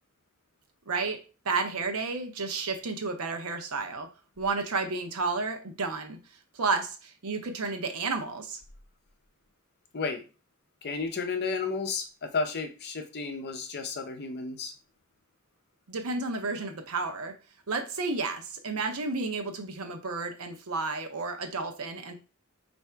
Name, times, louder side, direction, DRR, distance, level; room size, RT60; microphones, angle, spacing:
voice 1, 0.9-4.1 4.4-6.2 6.5-8.6 15.9-17.3 17.7-22.1, right 4 dB, 80° right, 5 dB, 0.7 m, -31 dB
voice 2, 9.9-10.2 10.8-14.7, left 4 dB, 50° left, 6 dB, 0.6 m, -32 dB
3.3 x 2.6 x 4.5 m, 0.33 s
head